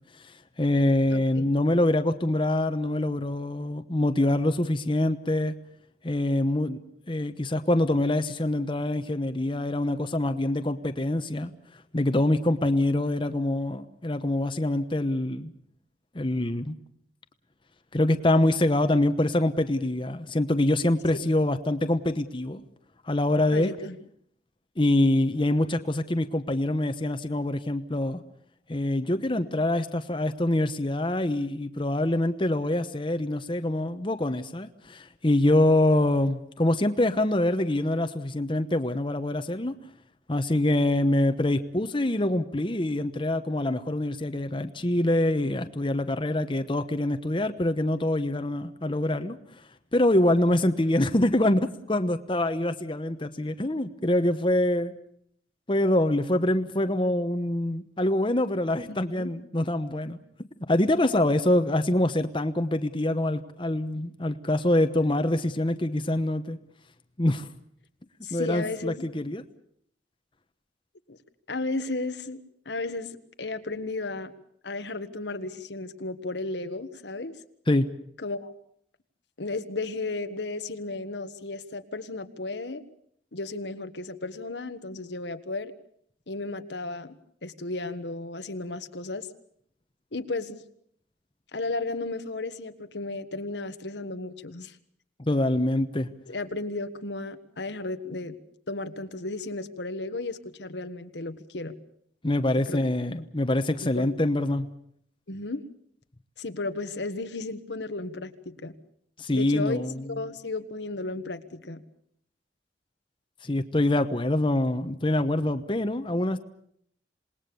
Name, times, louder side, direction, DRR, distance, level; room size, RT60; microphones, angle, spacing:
voice 1, 0.6-5.5 6.0-6.8 7.1-15.5 16.1-16.7 17.9-22.6 23.1-23.7 24.8-28.2 28.7-39.7 40.3-49.4 49.9-54.9 55.7-60.2 60.7-66.6 67.2-67.5 68.3-69.4 77.7-77.9 95.3-96.1 102.2-104.7 109.2-110.0 113.4-116.4, left 1 dB, 30° left, 8 dB, 1.0 m, -25 dB
voice 2, 1.1-1.5 21.2-21.3 23.5-23.9 29.4-29.5 58.9-59.3 68.2-69.1 71.1-71.2 71.5-74.3 74.6-77.4 78.2-78.5 79.4-82.8 83.3-85.7 86.3-87.1 87.4-89.3 90.1-90.6 91.5-94.8 96.3-98.4 98.7-101.8 102.7-102.8 103.8-104.1 105.3-105.6 106.4-108.7 109.3-111.8, left 2 dB, 90° left, 9 dB, 1.5 m, -34 dB
27.5 x 19.5 x 7.0 m, 0.67 s
head